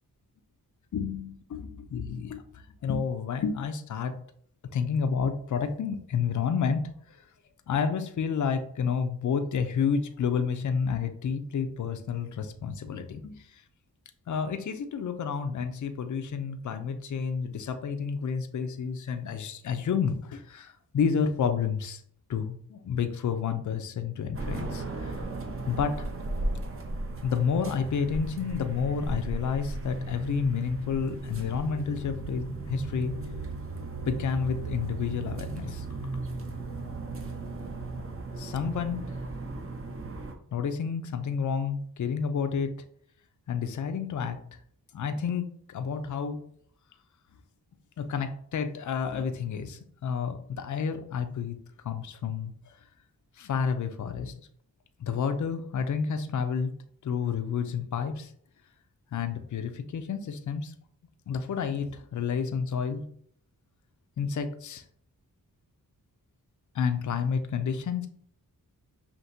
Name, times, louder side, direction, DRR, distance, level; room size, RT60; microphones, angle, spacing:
voice 1, 0.9-4.2 4.7-6.8 7.1-7.2 7.7-13.4 14.3-22.0 22.3-25.1 25.7-25.9 27.2-33.1 34.1-35.8 38.4-39.0 40.5-42.7 43.5-44.4 44.9-46.4 48.0-51.6 51.8-52.5 53.4-54.5 55.0-56.7 57.0-58.3 59.1-60.7 61.3-63.0 64.2-64.8 66.7-68.1, left 6 dB, 55° left, 8 dB, 0.5 m, -30 dB
sound 1, 24.3-40.3, right 2 dB, 35° right, 0.7 m, -36 dB
5.8 x 2.8 x 2.7 m, 0.62 s
wide cardioid pair, 75°, 37 cm